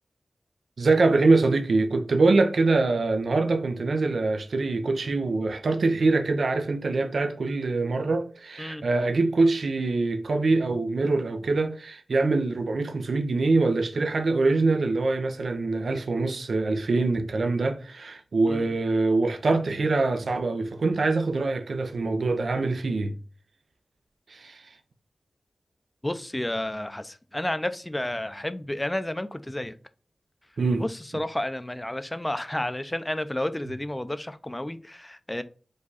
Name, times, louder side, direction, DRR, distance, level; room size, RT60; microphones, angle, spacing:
voice 1, 0.8-23.1 24.3-24.6 30.6-30.8, right 3 dB, 75° right, 0.6 m, -24 dB
voice 2, 26.0-29.8 30.8-35.4, left 1 dB, 20° left, 0.5 m, -31 dB
5.0 x 2.3 x 4.0 m
cardioid pair, 45°, 0 cm